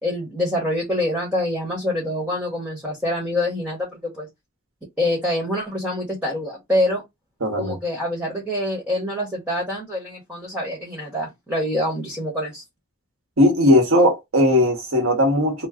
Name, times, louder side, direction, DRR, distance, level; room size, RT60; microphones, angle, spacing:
voice 1, 0.0-4.3 5.0-7.0 7.6-12.6, left 1 dB, 5° right, 1.1 m, -25 dB
voice 2, 7.4-7.8 13.4-15.7, left 1 dB, 85° right, 1.2 m, -18 dB
3.0 x 2.0 x 3.6 m
head